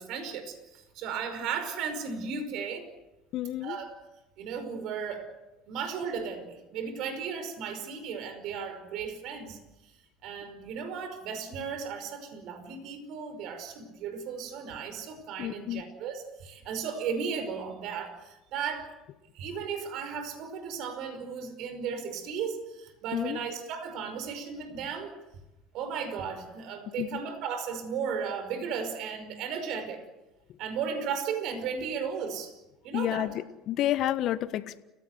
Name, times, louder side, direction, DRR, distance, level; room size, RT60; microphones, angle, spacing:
voice 1, 0.0-2.9 3.6-4.0 4.4-5.3 5.7-9.9 10.2-18.9 19.3-25.2 25.7-30.0 30.6-32.5 32.8-33.3, right 6 dB, 60° right, 8 dB, 5.3 m, -35 dB
voice 2, 3.3-3.8 15.4-15.8 23.1-23.4 27.0-27.2 32.9-34.8, left 13 dB, 55° left, 12 dB, 1.5 m, -30 dB
29.5 x 17.0 x 8.1 m, 0.97 s
hypercardioid pair, 70°, 0 cm